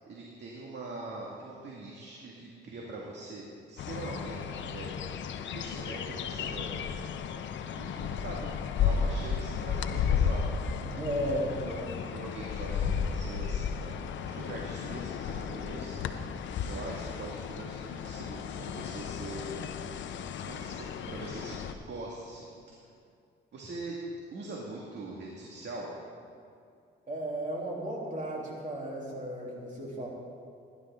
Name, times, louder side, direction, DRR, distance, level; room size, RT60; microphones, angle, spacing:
voice 1, 0.0-6.9 7.7-8.5 8.8-10.4 11.3-13.9 14.2-16.0 16.6-19.6 19.9-20.2 20.4-22.5 23.5-24.0 24.3-25.9, right 2 dB, 60° right, -3 dB, 2.0 m, -42 dB
sound 1, 3.8-21.7, left 7 dB, 70° left, 0.7 m, -34 dB
voice 2, 10.8-11.9 27.1-30.1, right 1 dB, 40° right, -3 dB, 3.3 m, -34 dB
17.5 x 11.0 x 3.7 m, 2.4 s
cardioid pair, 90°, 20 cm